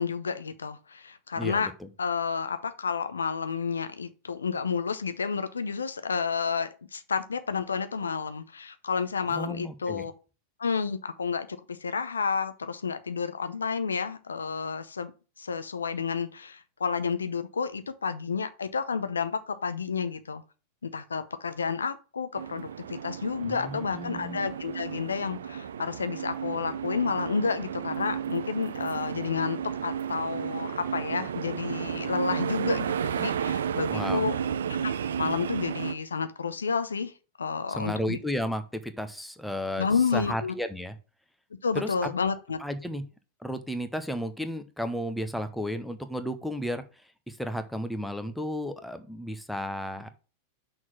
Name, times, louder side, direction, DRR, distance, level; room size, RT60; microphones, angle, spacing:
voice 1, 0.0-1.7 2.0-10.1 10.6-15.1 15.4-20.4 20.8-34.4 34.8-34.9 35.2-37.1 37.4-38.2 39.8-40.5 41.6-42.6, left 5 dB, 75° left, 0.7 m, -30 dB
voice 2, 1.4-1.9 9.3-10.1 23.4-24.4 33.9-34.2 37.7-39.9 40.1-40.9 41.7-41.9 42.6-43.0 43.4-46.8 47.3-50.1, equal, ahead, 0.8 m, -33 dB
sound 1, 22.3-35.9, right 8 dB, 65° right, 0.4 m, -33 dB
6.1 x 3.9 x 6.1 m
figure-of-eight pair, 90°, 0 cm